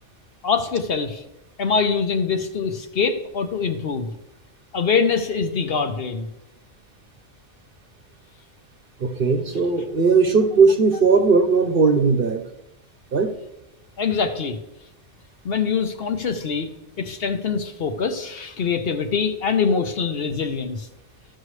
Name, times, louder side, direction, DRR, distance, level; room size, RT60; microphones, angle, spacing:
voice 1, 0.4-1.2 1.6-4.1 4.7-6.3 14.0-14.6 15.4-16.7 17.0-20.9, left 5 dB, 55° left, 7 dB, 0.9 m, -24 dB
voice 2, 9.0-12.5 13.1-13.3, right 4 dB, 50° right, 7 dB, 0.9 m, -18 dB
14.0 x 6.3 x 3.2 m, 0.92 s
omnidirectional pair, 1.3 m